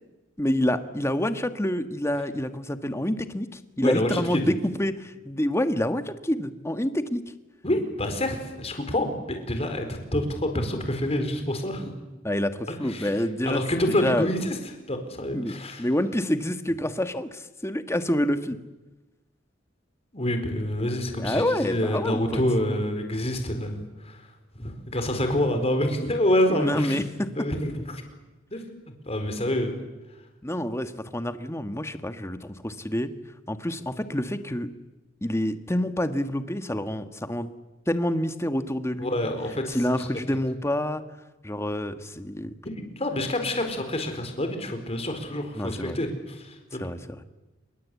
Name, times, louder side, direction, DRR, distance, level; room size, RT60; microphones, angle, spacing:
voice 1, 0.4-7.2 12.2-13.6 14.0-14.3 15.3-18.6 21.2-22.4 26.5-27.5 30.4-33.1 33.5-34.7 35.2-37.5 37.9-39.3 39.7-41.0 41.4-42.5 45.5-46.0 46.8-47.2, left 1 dB, 15° left, 9 dB, 1.4 m, -27 dB
voice 2, 3.8-4.4 7.6-11.9 12.7-13.1 13.4-14.6 14.9-15.9 20.1-24.2 24.6-27.0 27.3-28.0 28.5-28.6 29.1-29.8 39.0-40.1 42.6-46.8, left 1 dB, 30° left, 6 dB, 4.5 m, -27 dB
27.0 x 23.0 x 8.4 m, 1.1 s
head